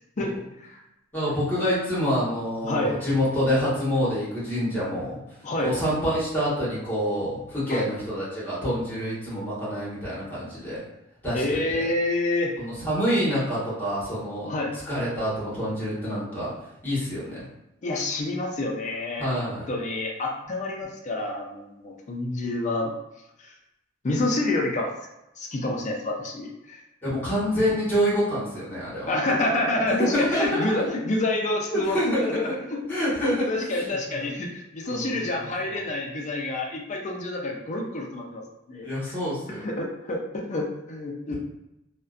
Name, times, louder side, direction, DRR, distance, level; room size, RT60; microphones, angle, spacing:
voice 1, 1.1-5.2 5.6-10.8 11.2-11.4 11.7-11.9 12.6-14.5 14.9-16.5 16.8-17.5 19.2-19.7 27.0-29.1 29.9-30.8 31.7-32.5 32.9-34.3 34.8-35.8 38.8-39.7, equal, 10° left, -9 dB, 1.1 m, -27 dB
voice 2, 2.6-3.0 5.4-5.7 7.7-7.8 11.3-12.6 14.5-14.8 17.8-19.3 19.7-22.9 23.4-23.5 24.0-24.9 25.4-26.8 29.1-32.8 33.2-38.4 38.7-38.9 39.6-41.3, left 2 dB, 40° left, 0 dB, 0.4 m, -28 dB
2.5 x 2.1 x 2.3 m, 0.90 s
head